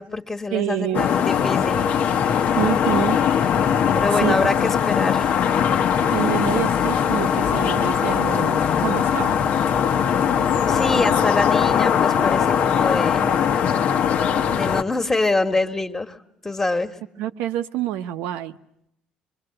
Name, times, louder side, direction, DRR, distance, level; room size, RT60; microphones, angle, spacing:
voice 1, 0.0-1.8 3.9-5.3 10.7-13.3 14.5-16.2 16.4-16.9, left 2 dB, 15° left, 6 dB, 1.6 m, -25 dB
voice 2, 0.5-1.1 2.5-3.2 4.1-4.4 6.1-9.4 10.9-11.2 12.2-12.3 13.2-13.3 17.2-18.6, right 12 dB, 85° right, 9 dB, 1.0 m, -27 dB
sound 1, 0.9-14.8, left 8 dB, 55° left, 1.0 m, -20 dB
25.5 x 23.0 x 7.8 m, 0.77 s
cardioid pair, 110°, 3 cm